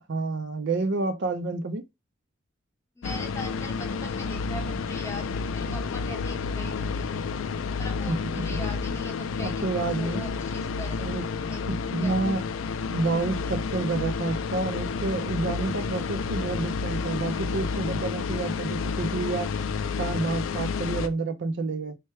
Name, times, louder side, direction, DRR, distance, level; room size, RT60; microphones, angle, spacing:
voice 1, 0.1-1.8 8.1-8.2 9.4-10.3 11.0-11.2 11.7-12.4 12.9-19.5 20.0-22.0, right 3 dB, 60° right, 0.5 m, -29 dB
sound 1, 3.0-21.1, left 5 dB, 85° left, 0.4 m, -30 dB
voice 2, 3.0-7.1 7.8-9.7 10.0-11.1 11.4-12.4, left 1 dB, 15° left, 0.8 m, -41 dB
4.4 x 2.1 x 3.1 m
head